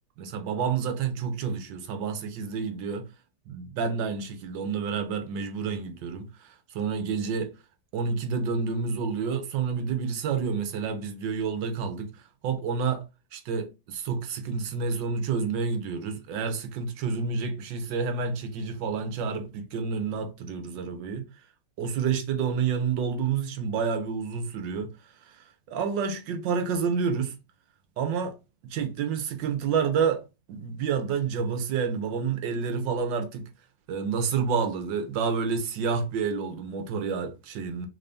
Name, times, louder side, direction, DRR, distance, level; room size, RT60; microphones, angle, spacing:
voice 1, 0.2-3.1 3.5-7.5 7.9-12.1 12.4-13.0 13.3-21.2 21.8-24.9 25.2-25.4 25.7-27.3 28.0-28.4 28.6-30.2 30.5-33.5 33.9-37.9, right 5 dB, 85° right, 1.5 m, -29 dB
3.5 x 2.6 x 3.3 m
omnidirectional pair, 2.0 m